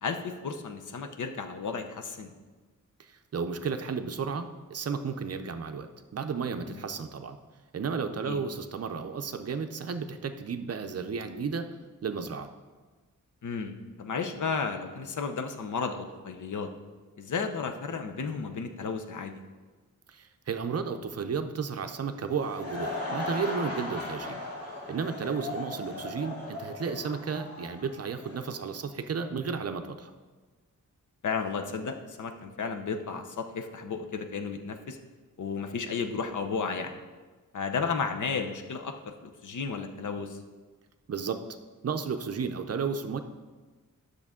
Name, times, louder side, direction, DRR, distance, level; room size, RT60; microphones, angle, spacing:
voice 1, 0.0-2.3 6.7-6.8 8.2-8.4 13.4-16.7 17.2-19.4 25.9-26.0 31.2-35.0 35.4-37.0 37.5-38.9 39.2-40.4, left 5 dB, 65° left, 6 dB, 0.7 m, -33 dB
voice 2, 3.0-7.4 7.7-11.7 12.0-12.5 20.1-24.4 24.9-30.1 41.1-41.5 41.8-43.2, right 5 dB, 50° right, 8 dB, 0.5 m, -33 dB
Laughter / Crowd, 22.2-28.5, left 2 dB, 45° left, 2.2 m, -37 dB
10.5 x 6.5 x 3.6 m, 1.3 s
wide cardioid pair, 165°, 33 cm